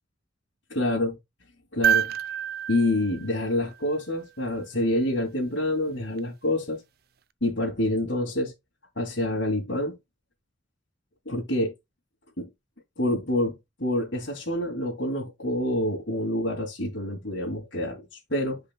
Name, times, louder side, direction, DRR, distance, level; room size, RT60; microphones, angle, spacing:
voice 1, 0.7-1.2 1.7-2.1 2.7-6.8 7.4-8.5 9.0-10.0 11.3-11.7 12.4-12.5 13.0-18.6, left 1 dB, 75° left, 2.8 m, -27 dB
sound 1, 1.8-4.2 6.2-6.3, right 9 dB, 55° right, 0.5 m, -28 dB
10.0 x 5.2 x 2.3 m
head